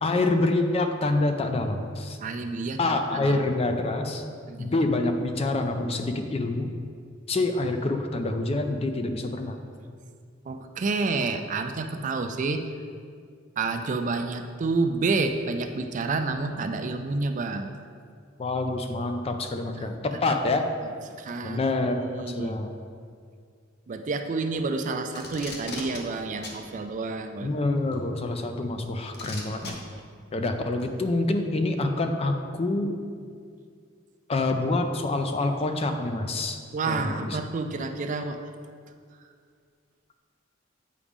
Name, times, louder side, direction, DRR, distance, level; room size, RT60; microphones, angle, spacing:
voice 1, 0.0-2.2 2.8-4.2 4.6-6.7 7.3-9.6 18.4-20.7 21.4-22.7 27.4-29.8 30.3-33.0 34.3-37.4, left 2 dB, 30° left, 6 dB, 0.4 m, -26 dB
voice 2, 2.2-3.4 4.5-4.7 10.5-12.6 13.6-17.7 21.2-21.6 22.0-22.6 23.9-27.5 36.7-38.4, right 3 dB, 40° right, 7 dB, 0.4 m, -29 dB
Packing tape duct tape, 25.1-26.0 26.4-26.6 27.9-28.0 29.1-29.7 30.8-30.9, left 3 dB, 55° left, 0.9 m, -37 dB
8.4 x 4.8 x 3.6 m, 2.2 s
head